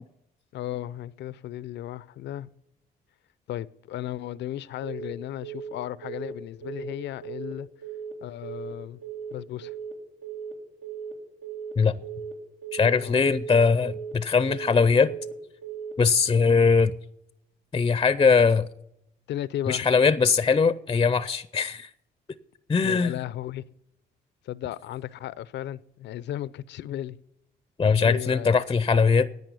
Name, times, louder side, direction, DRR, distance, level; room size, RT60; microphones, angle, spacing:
voice 1, 0.5-2.5 3.5-7.7 8.2-9.0 9.3-9.7 13.0-13.2 19.3-19.8 22.8-23.6 24.4-27.2 28.0-28.5, left 12 dB, 70° left, 0.5 m, -35 dB
Telephone, 4.8-5.1 5.4-5.7 6.0-6.3 6.6-6.9 7.2-7.5 7.8-8.1 8.4-8.7 9.0-9.3 9.6-9.9 10.2-10.5 10.8-11.1 11.4-11.7 12.0-12.3 12.6-12.9 13.2-13.5 13.8-14.1 14.4-14.7 15.0-15.3 15.6-15.9, right 8 dB, 80° right, 2.9 m, -37 dB
voice 2, 12.7-15.1 16.0-17.0 17.7-18.7 19.7-21.9 22.7-23.1 27.8-29.3, left 5 dB, 25° left, 0.5 m, -21 dB
10.5 x 8.6 x 8.2 m
supercardioid pair, 75°, 19 cm